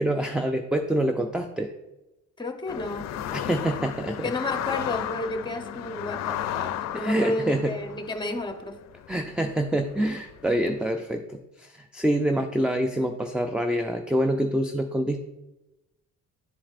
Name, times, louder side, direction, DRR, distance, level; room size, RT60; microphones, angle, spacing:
voice 1, 0.0-1.7 3.3-4.3 6.9-7.7 9.1-11.2 11.6-15.2, right 1 dB, 5° right, 6 dB, 0.3 m, -26 dB
voice 2, 2.4-3.0 4.2-8.7, left 2 dB, 15° left, 5 dB, 0.8 m, -32 dB
sound 1, 2.7-10.8, left 11 dB, 60° left, 0.4 m, -35 dB
10.5 x 4.3 x 2.5 m, 0.98 s
cardioid pair, 90°, 30 cm